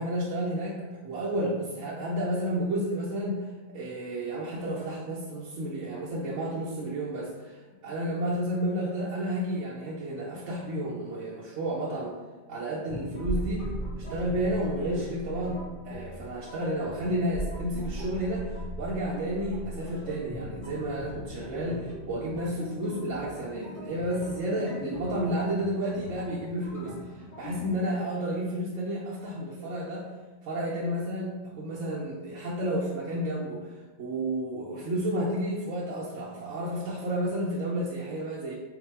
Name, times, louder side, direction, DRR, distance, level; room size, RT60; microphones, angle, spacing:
voice 1, 0.0-3.5 3.7-12.2 12.5-13.7 14.0-30.1 30.4-38.5, right 1 dB, 85° right, -6 dB, 1.0 m, -31 dB
sound 1, 12.9-27.7, left 1 dB, 30° left, 1.0 m, -43 dB
sound 2, 13.2-21.6 21.9-22.0, right 1 dB, 65° left, 1.4 m, -38 dB
3.7 x 2.2 x 4.4 m, 1.3 s
omnidirectional pair, 1.2 m